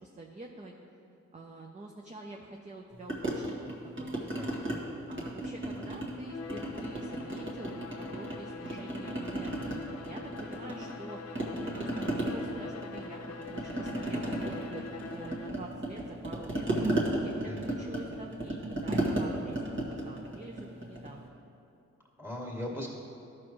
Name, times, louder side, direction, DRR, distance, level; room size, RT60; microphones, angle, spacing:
voice 1, 0.0-0.7 1.3-4.5 5.1-11.2 11.5-17.3 17.6-21.3, right 2 dB, 25° right, 1 dB, 0.7 m, -46 dB
sound 1, 3.1-4.8 5.1-6.2 6.5-8.4 8.7-11.1 11.3-21.2, right 1 dB, 40° right, 1.8 m, -34 dB
voice 2, 4.3-4.8 5.6-5.9 17.4-17.7 22.2-22.9, left 1 dB, 10° right, -3 dB, 2.1 m, -40 dB
Bowed string instrument, 6.2-15.7, left 4 dB, 60° left, 0.7 m, -44 dB
13.5 x 6.1 x 3.1 m, 2.7 s
cardioid pair, 80°, 29 cm